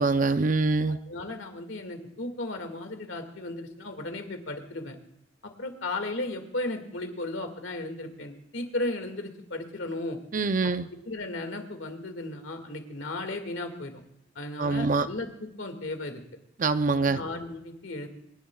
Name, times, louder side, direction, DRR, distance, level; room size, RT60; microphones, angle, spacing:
voice 1, 0.0-1.0 10.3-10.9 14.6-15.1 16.6-17.2, right 3 dB, 40° right, 11 dB, 0.6 m, -24 dB
voice 2, 1.1-5.0 5.4-10.2 10.6-10.7 11.1-14.0 14.4-16.2 17.0-18.1, left 2 dB, 70° left, 6 dB, 2.1 m, -35 dB
27.0 x 11.5 x 2.4 m, 0.79 s
head